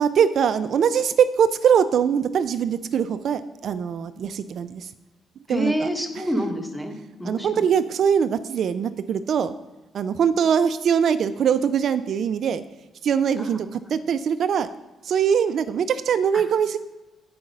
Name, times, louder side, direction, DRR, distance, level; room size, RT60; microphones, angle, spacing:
voice 1, 0.0-4.9 5.5-5.9 6.2-6.3 7.2-9.5 9.9-12.6 13.0-14.7 15.0-16.8, right 7 dB, 60° right, 12 dB, 0.4 m, -22 dB
voice 2, 5.5-7.7 13.4-13.7, equal, 5° left, 4 dB, 1.3 m, -28 dB
8.7 x 4.8 x 5.3 m, 1.1 s
cardioid pair, 90°, 0 cm